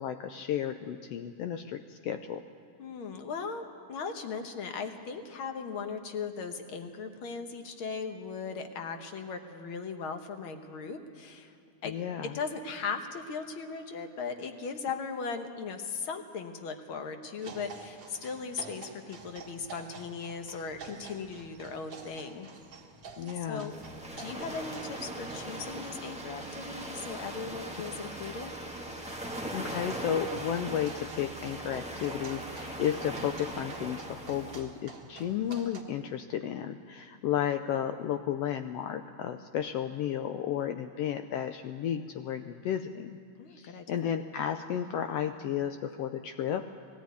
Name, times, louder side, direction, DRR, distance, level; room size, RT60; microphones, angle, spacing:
voice 1, 0.0-2.4 11.8-12.4 23.2-23.7 29.5-43.2 43.5-46.7, left 9 dB, 85° left, 8 dB, 1.4 m, -33 dB
voice 2, 2.8-11.6 11.8-12.0 12.2-22.5 23.5-23.7 24.2-28.6 43.4-44.1, left 5 dB, 60° left, 6 dB, 1.5 m, -38 dB
sound 1, 17.4-25.9 28.9-35.8, right 4 dB, 45° right, 2.0 m, -49 dB
sound 2, 23.7-34.6, right 1 dB, 10° right, 0.3 m, -40 dB
20.0 x 14.5 x 9.4 m, 2.7 s
omnidirectional pair, 3.4 m